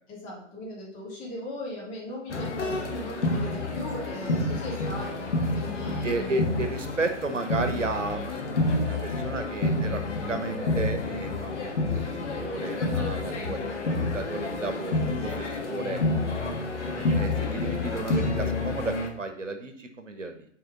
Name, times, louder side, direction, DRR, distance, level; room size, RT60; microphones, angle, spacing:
voice 1, 0.1-6.4 15.0-15.4, left 1 dB, 20° left, -6 dB, 3.1 m, -38 dB
sound 1, 2.3-19.1, left 2 dB, 65° left, 1.5 m, -29 dB
voice 2, 6.0-11.7 11.9-16.0 16.9-20.5, right 3 dB, 75° right, 8 dB, 1.0 m, -33 dB
7.8 x 4.5 x 3.9 m, 0.67 s
figure-of-eight pair, 120°, 38 cm